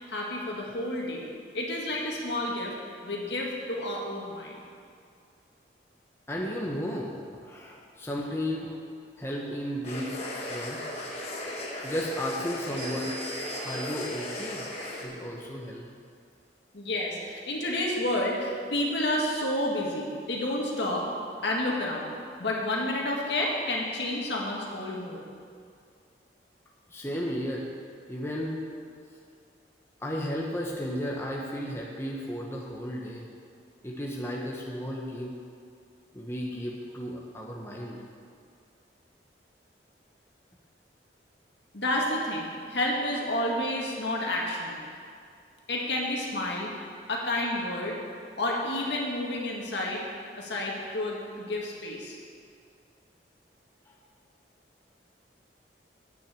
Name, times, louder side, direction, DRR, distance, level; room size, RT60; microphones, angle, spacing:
voice 1, 0.1-1.3 1.5-2.8 3.0-4.6 16.7-21.0 21.4-22.1 22.4-25.2 41.7-44.8 45.7-46.7 47.1-48.0 48.4-50.0 50.4-52.2, left 1 dB, 75° left, -2 dB, 1.9 m, -30 dB
voice 2, 6.3-8.8 9.2-10.8 11.8-13.2 13.6-14.7 15.0-15.9 26.9-27.6 28.1-28.6 30.0-33.3 33.8-35.3 36.1-38.0, equal, 15° left, -2 dB, 1.0 m, -34 dB
sound 1, 9.8-15.0, left 1 dB, 35° left, 1.4 m, -36 dB
sound 2, 12.8-14.5, right 3 dB, 35° right, 2.3 m, -43 dB
9.1 x 6.4 x 8.2 m, 2.3 s
head